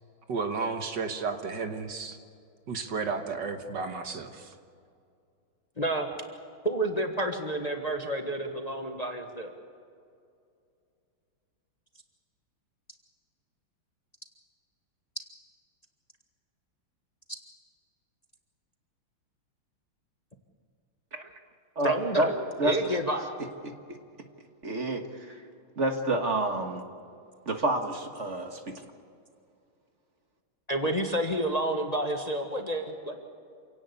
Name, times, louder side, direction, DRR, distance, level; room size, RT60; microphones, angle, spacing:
voice 1, 0.3-2.2 2.7-4.6, right 4 dB, 60° right, 6 dB, 1.9 m, -33 dB
voice 2, 5.8-6.1 6.6-9.5 21.8-23.3 30.7-33.2, right 1 dB, 20° left, 4 dB, 1.4 m, -29 dB
voice 3, 21.8-22.3 22.6-22.8 23.6-24.0 24.6-25.4 25.8-26.8 27.5-28.9, right 2 dB, 40° right, 5 dB, 1.6 m, -29 dB
27.5 x 17.5 x 8.3 m, 2.4 s
omnidirectional pair, 2.3 m